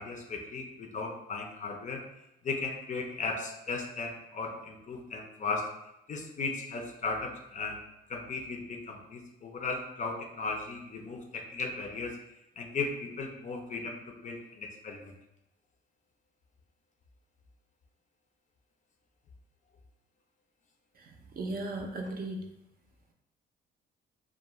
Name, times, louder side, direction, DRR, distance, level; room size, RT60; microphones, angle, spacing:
voice 1, 0.0-2.0 2.4-5.7 6.1-7.8 8.1-12.1 12.6-15.1, left 3 dB, 40° left, 3 dB, 0.4 m, -36 dB
voice 2, 21.0-22.4, right 2 dB, 50° right, 3 dB, 0.4 m, -37 dB
2.3 x 2.0 x 3.0 m, 0.88 s
cardioid pair, 90°, 20 cm